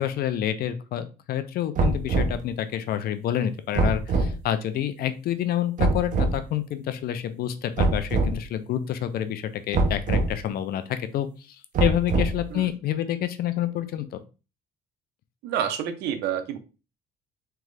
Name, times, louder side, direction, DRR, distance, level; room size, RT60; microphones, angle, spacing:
voice 1, 0.0-11.3 11.8-14.2, left 11 dB, 65° left, 0.6 m, -28 dB
sound 1, 1.8-2.4 3.8-4.3 5.8-6.4 7.8-8.4 9.7-10.3 11.8-12.5, right 3 dB, 50° right, 0.9 m, -23 dB
voice 2, 15.4-16.6, right 9 dB, 80° right, 0.7 m, -28 dB
3.6 x 3.4 x 3.3 m
cardioid pair, 110°, 17 cm